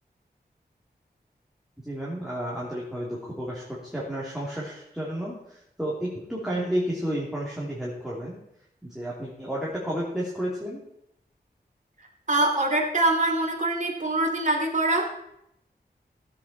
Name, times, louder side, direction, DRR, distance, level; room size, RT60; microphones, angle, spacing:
voice 1, 1.8-8.4 8.8-10.8, equal, 5° right, -6 dB, 3.0 m, -31 dB
voice 2, 12.0-15.1, right 2 dB, 45° right, 0 dB, 2.3 m, -24 dB
16.0 x 8.2 x 4.3 m, 0.79 s
wide cardioid pair, 90°, 18 cm